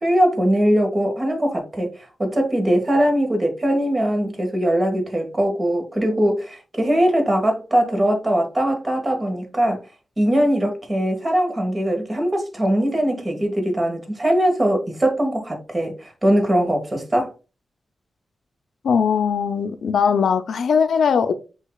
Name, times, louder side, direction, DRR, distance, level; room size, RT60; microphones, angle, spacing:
voice 1, 0.0-9.8 10.2-17.3, equal, 30° right, 1.5 m, -21 dB
voice 2, 18.8-21.3, left 6 dB, 90° left, 0.4 m, -19 dB
8.2 x 2.8 x 2.3 m
wide cardioid pair, 90°, 0 cm